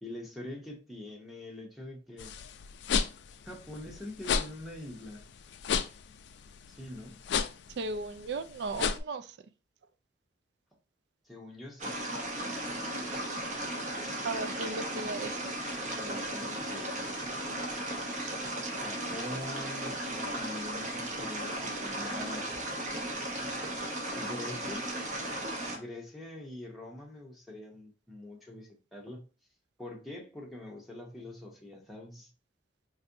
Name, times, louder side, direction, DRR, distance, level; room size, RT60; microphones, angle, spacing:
voice 1, 0.0-2.4 3.5-5.3 6.7-7.2 11.2-12.0 15.8-17.2 18.7-22.6 24.2-24.9 25.7-29.2 29.8-32.3, left 1 dB, ahead, 0.7 m, -44 dB
sound 1, 2.2-9.0, left 6 dB, 65° left, 0.3 m, -33 dB
voice 2, 7.8-9.3 14.2-15.5, right 3 dB, 65° right, 0.3 m, -36 dB
sound 2, 11.8-25.8, right 1 dB, 40° right, 0.8 m, -36 dB
4.0 x 2.6 x 2.6 m
head